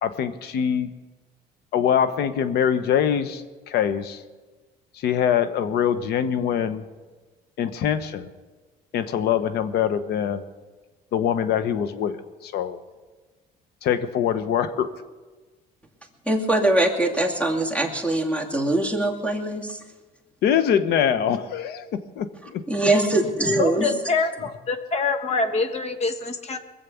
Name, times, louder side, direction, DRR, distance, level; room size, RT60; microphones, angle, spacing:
voice 1, 0.0-0.9 1.7-4.2 5.0-6.8 7.6-8.3 8.9-10.4 11.1-12.2 12.4-12.8 13.8-14.9 20.4-22.6, left 8 dB, 75° left, 11 dB, 1.0 m, -23 dB
voice 2, 16.3-19.8 22.7-23.9, right 1 dB, 5° left, 2 dB, 2.4 m, -22 dB
voice 3, 23.4-26.6, left 4 dB, 40° left, 8 dB, 1.3 m, -25 dB
21.5 x 7.6 x 7.1 m, 1.3 s
cardioid pair, 110°, 17 cm